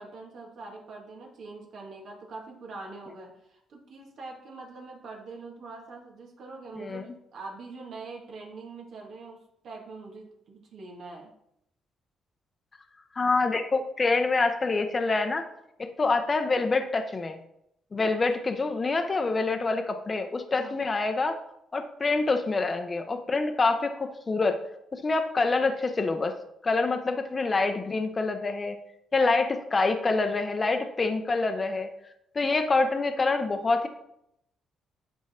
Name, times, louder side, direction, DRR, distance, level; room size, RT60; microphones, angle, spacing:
voice 1, 0.0-11.3 20.5-20.8, right 3 dB, 65° right, -1 dB, 1.8 m, -43 dB
voice 2, 13.2-15.5 15.8-17.4 17.9-21.4 21.7-24.6 24.9-26.3 26.6-28.8 29.1-31.9 32.3-33.9, left 3 dB, 30° left, 6 dB, 0.7 m, -26 dB
9.5 x 3.7 x 4.3 m, 0.78 s
cardioid pair, 90°, 0 cm